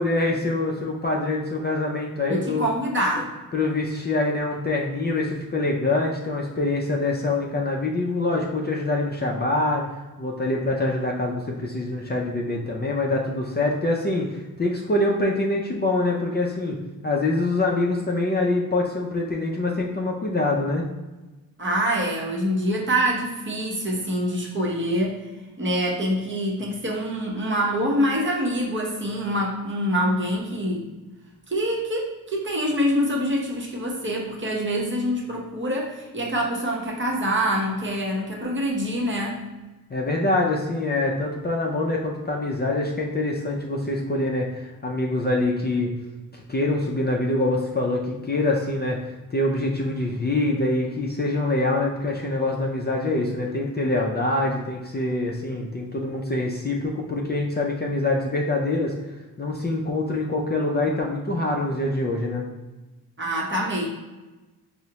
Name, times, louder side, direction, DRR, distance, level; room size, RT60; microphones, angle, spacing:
voice 1, 0.0-2.7 3.5-9.8 10.2-16.8 17.0-20.9 39.9-45.9 46.3-49.0 49.3-62.4, left 2 dB, 30° left, -2 dB, 0.4 m, -25 dB
voice 2, 2.3-3.3 21.6-25.2 25.6-30.9 31.5-39.4 63.2-63.9, equal, 35° right, -2 dB, 0.8 m, -25 dB
4.7 x 2.1 x 2.8 m, 1.1 s
wide cardioid pair, 80°, 36 cm